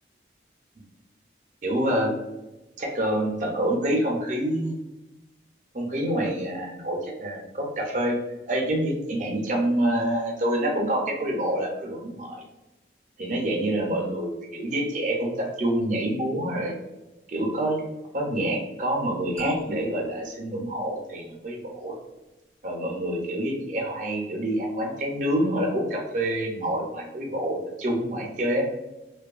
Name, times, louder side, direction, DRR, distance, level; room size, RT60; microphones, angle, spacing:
voice 1, 1.6-2.1 2.8-4.8 5.7-8.2 8.5-12.4 13.2-16.7 17.3-17.8 18.1-22.0 22.6-28.7, right 1 dB, 45° right, 0 dB, 0.5 m, -27 dB
sound 1, 19.4-21.4, left 3 dB, 35° left, 0.5 m, -43 dB
2.6 x 2.2 x 2.3 m, 1.0 s
head